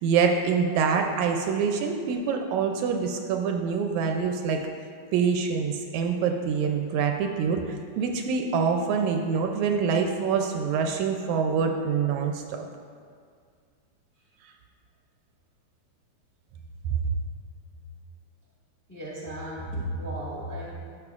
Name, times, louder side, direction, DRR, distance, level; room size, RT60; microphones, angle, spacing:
voice 1, 0.0-4.6 5.1-12.4, right 6 dB, 80° right, 3 dB, 1.8 m, -25 dB
voice 2, 18.9-20.8, right 1 dB, 10° left, -7 dB, 1.0 m, -34 dB
12.0 x 6.7 x 2.4 m, 2.1 s
omnidirectional pair, 3.5 m